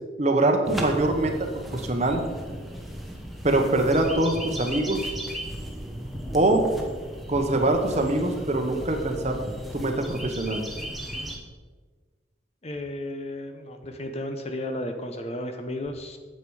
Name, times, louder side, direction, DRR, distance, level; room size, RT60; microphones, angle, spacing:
voice 1, 0.2-1.3 1.7-2.2 3.4-5.1 6.3-6.7 7.3-9.4 9.7-10.7, right 2 dB, 35° right, 4 dB, 1.0 m, -23 dB
sound 1, 0.6-11.4, equal, ahead, 0.9 m, -36 dB
voice 2, 12.6-16.2, left 1 dB, 30° left, 6 dB, 0.7 m, -33 dB
8.6 x 7.8 x 4.8 m, 1.4 s
head